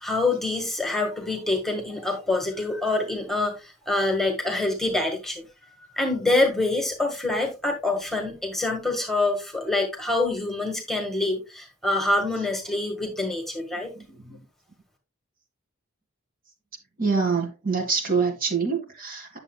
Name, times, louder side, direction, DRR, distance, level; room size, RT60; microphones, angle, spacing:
voice 1, 0.0-5.4 6.0-13.9, left 2 dB, ahead, 1.5 m, -26 dB
voice 2, 17.0-19.4, right 5 dB, 40° right, 1.9 m, -25 dB
9.8 x 7.0 x 2.2 m
head